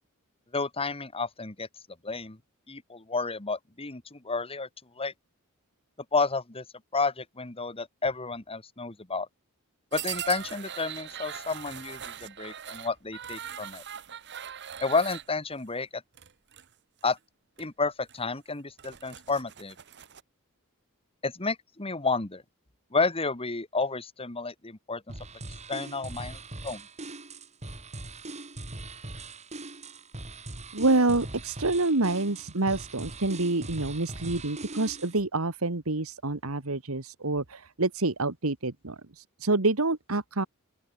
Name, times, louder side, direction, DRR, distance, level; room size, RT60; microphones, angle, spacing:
voice 1, 0.5-1.7 2.0-2.4 2.7-4.7 5.0-5.1 6.1-6.6 6.9-9.3 9.9-13.8 14.8-16.0 17.0-17.2 17.6-19.7 21.2-22.4 22.9-25.0 25.7-26.9, left 4 dB, 25° left, 1.8 m, -31 dB
sound 1, 9.9-15.3 16.1-16.7 17.0-17.2 17.6-17.7 18.1-18.2 18.6-20.2, right 9 dB, 55° right, 1.8 m, -40 dB
sound 2, 25.1-35.2, right 2 dB, 30° right, 3.1 m, -41 dB
voice 2, 30.7-40.5, right 2 dB, 70° right, 1.8 m, -27 dB
open air
head